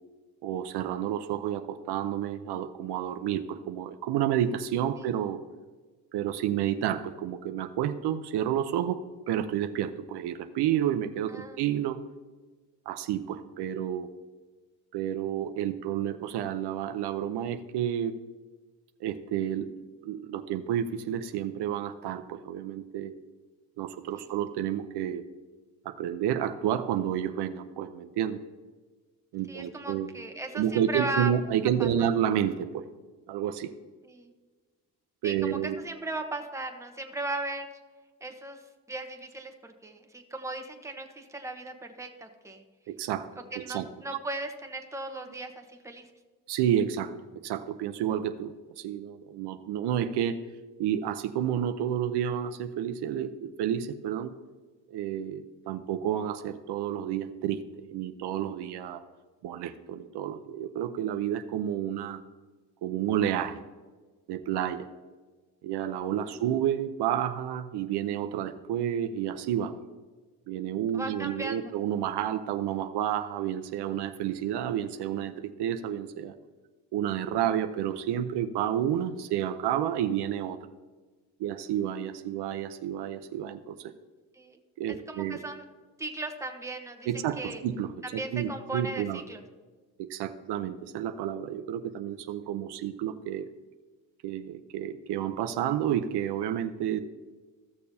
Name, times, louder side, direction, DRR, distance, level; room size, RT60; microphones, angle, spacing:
voice 1, 0.4-5.4 6.1-12.0 12.9-14.1 14.9-18.2 19.0-19.7 20.0-23.1 23.8-25.2 25.8-28.4 29.3-30.1 30.5-32.8 33.3-33.7 35.2-35.8 42.9-43.3 43.6-43.9 46.5-47.1 47.4-50.4 50.8-54.3 54.9-59.0 59.4-62.2 62.8-63.6 64.3-64.9 65.6-69.7 70.5-76.3 76.9-80.6 81.4-83.9 84.8-85.4 87.1-89.2 90.0-93.5 94.2-97.0, right 10 dB, 75° right, 8 dB, 0.7 m, -30 dB
voice 2, 11.3-11.6 24.2-24.3 29.5-31.3 31.8-32.1 34.0-34.3 35.2-37.7 38.2-38.6 38.9-42.6 43.5-46.1 70.9-71.7 84.3-84.6 84.9-85.6 86.0-87.1 87.4-87.6 88.0-89.4, right 2 dB, 5° right, 4 dB, 1.1 m, -37 dB
15.0 x 6.6 x 2.7 m, 1.4 s
cardioid pair, 105°, 40 cm